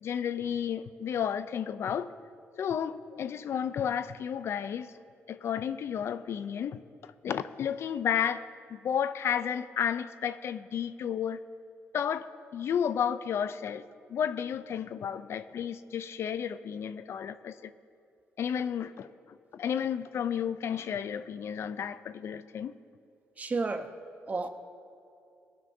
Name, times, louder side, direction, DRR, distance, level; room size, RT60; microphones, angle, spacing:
voice 1, 0.0-2.1 2.6-4.9 5.3-11.4 11.9-12.3 12.5-13.8 14.1-17.7 18.4-22.7, left 8 dB, 65° left, 0.4 m, -32 dB
voice 2, 23.4-23.9 24.3-24.5, right 3 dB, 30° right, 0.9 m, -31 dB
18.0 x 12.0 x 2.7 m
cardioid pair, 85°, 5 cm